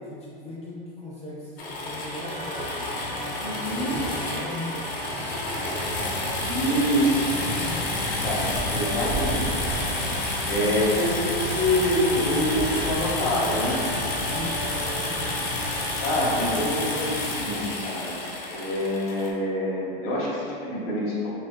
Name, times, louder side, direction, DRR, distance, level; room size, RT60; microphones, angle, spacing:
voice 1, 0.0-7.9 12.3-13.6 14.3-15.5, left 1 dB, 20° left, -6 dB, 0.5 m, -39 dB
sound 1, 1.6-19.3, left 2 dB, 80° left, 0.9 m, -30 dB
sound 2, 2.0-16.6, right 1 dB, 70° right, 0.9 m, -38 dB
voice 2, 3.4-4.0 6.4-7.4 8.2-13.8 16.0-18.2 18.5-21.3, equal, 45° left, -6 dB, 1.4 m, -26 dB
sound 3, 6.5-16.5, right 2 dB, ahead, 1.3 m, -39 dB
7.4 x 2.5 x 2.2 m, 2.5 s
supercardioid pair, 140°, 29 cm